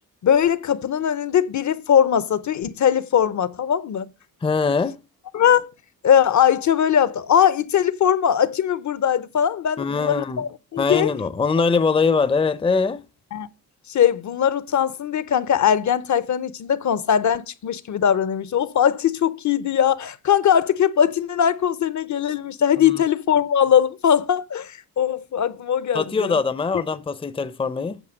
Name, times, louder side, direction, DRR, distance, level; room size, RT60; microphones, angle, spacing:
voice 1, 0.2-4.1 5.3-5.7 6.0-11.1 13.3-13.5 13.9-26.4, left 9 dB, 55° left, 0.8 m, -20 dB
voice 2, 4.4-5.0 9.8-10.4 10.8-13.0 25.9-28.0, left 4 dB, 15° left, 0.6 m, -22 dB
9.0 x 5.9 x 6.3 m
cardioid pair, 100°, 36 cm